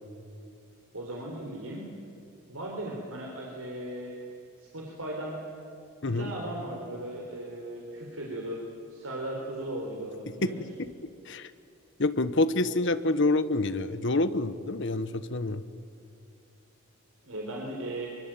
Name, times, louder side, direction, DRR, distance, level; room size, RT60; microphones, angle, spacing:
voice 1, 0.9-1.8 2.5-4.1 4.6-5.4 6.1-8.6 8.9-10.6 17.2-18.1, right 1 dB, 70° right, -1 dB, 4.2 m, -37 dB
voice 2, 12.0-15.6, left 2 dB, 55° left, 13 dB, 1.2 m, -27 dB
24.5 x 24.0 x 9.2 m, 2.5 s
head